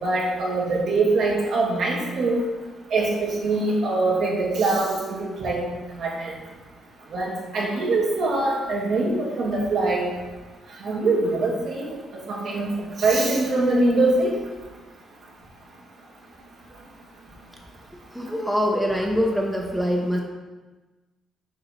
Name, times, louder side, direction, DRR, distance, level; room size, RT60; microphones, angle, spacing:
voice 1, 0.0-2.4 2.9-5.6 5.9-6.3 7.1-10.0 10.8-11.9 12.1-14.3, right 2 dB, 65° right, -4 dB, 2.0 m, -23 dB
voice 2, 18.1-20.2, equal, ahead, 0 dB, 0.8 m, -24 dB
6.9 x 4.7 x 4.2 m, 1.2 s
cardioid pair, 90°, 0 cm